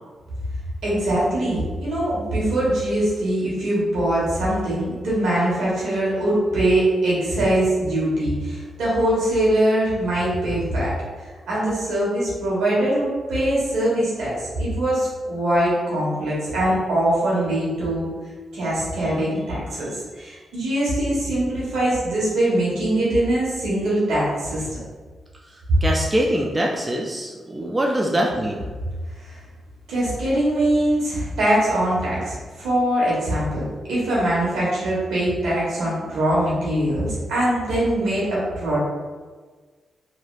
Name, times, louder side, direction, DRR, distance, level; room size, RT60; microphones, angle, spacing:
voice 1, 0.8-10.9 11.5-14.3 14.6-18.1 18.5-24.7 29.2-29.4 29.9-33.6 33.9-38.8, right 1 dB, 80° right, -7 dB, 1.3 m, -22 dB
voice 2, 25.8-28.7, right 1 dB, 25° right, -1 dB, 0.4 m, -23 dB
3.1 x 2.7 x 2.4 m, 1.4 s
supercardioid pair, 60°, 0 cm